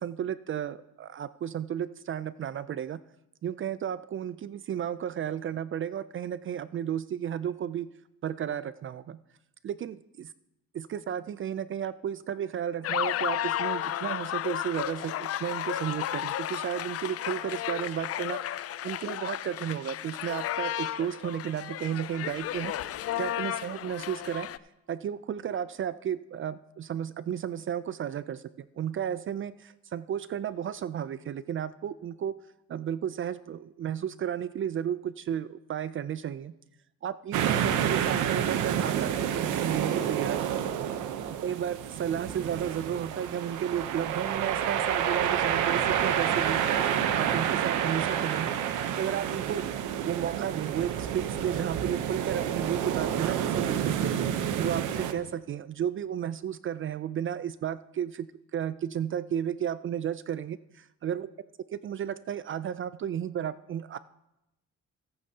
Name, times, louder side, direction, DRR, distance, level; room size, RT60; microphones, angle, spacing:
voice 1, 0.0-3.0 3.4-7.9 8.2-9.2 9.6-10.3 10.7-24.5 24.9-36.5 37.0-40.6 41.4-46.6 47.1-48.5 49.0-49.6 50.0-54.1 54.6-61.3 61.7-64.0, right 9 dB, 45° right, 15 dB, 0.4 m, -33 dB
sound 1, 12.8-24.6, left 12 dB, 50° left, 0.4 m, -33 dB
sound 2, 37.3-55.1, right 9 dB, 85° right, 0.9 m, -29 dB
18.0 x 8.6 x 2.8 m, 0.90 s
cardioid pair, 90°, 30 cm